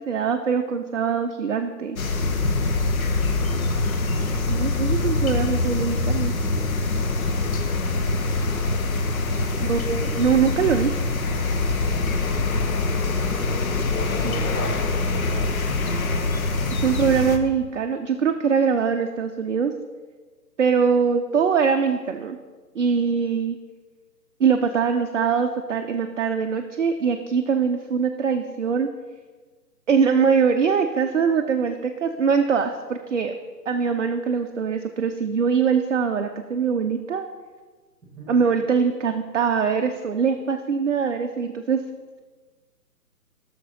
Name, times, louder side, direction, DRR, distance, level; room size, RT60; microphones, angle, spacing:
voice 1, 0.0-2.0 4.5-6.3 9.6-10.9 14.2-14.4 16.8-19.7 20.6-22.4 22.7-23.6 24.4-28.9 29.9-33.4 33.7-37.3 38.3-41.8, right 6 dB, 50° right, 5 dB, 0.5 m, -22 dB
sound 1, 2.0-17.4, left 3 dB, 55° left, 0.8 m, -24 dB
voice 2, 3.2-4.3 9.4-10.2 12.5-15.9 38.2-38.3, right 1 dB, 10° right, -5 dB, 1.3 m, -42 dB
11.0 x 6.6 x 2.7 m, 1.4 s
figure-of-eight pair, 140°, 50 cm